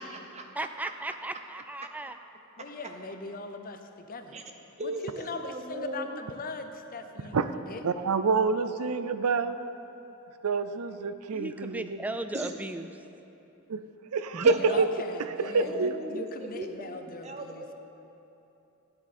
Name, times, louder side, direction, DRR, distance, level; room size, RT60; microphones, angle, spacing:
voice 1, 0.0-0.7 4.3-4.4 4.8-6.2 12.3-12.5 14.3-14.9 15.6-17.7, right 2 dB, 30° right, 4 dB, 0.7 m, -37 dB
voice 2, 0.5-2.1 11.3-12.9, right 1 dB, 5° right, 9 dB, 0.3 m, -36 dB
voice 3, 2.6-3.8 4.1-4.3 4.8-7.4 7.7-7.8 14.5-17.6, left 3 dB, 40° left, 6 dB, 0.7 m, -40 dB
voice 4, 7.8-9.6 10.4-12.0 13.7-13.8 14.1-14.9 15.4-15.9, right 4 dB, 80° right, 11 dB, 0.5 m, -27 dB
13.5 x 9.8 x 4.3 m, 3.0 s
head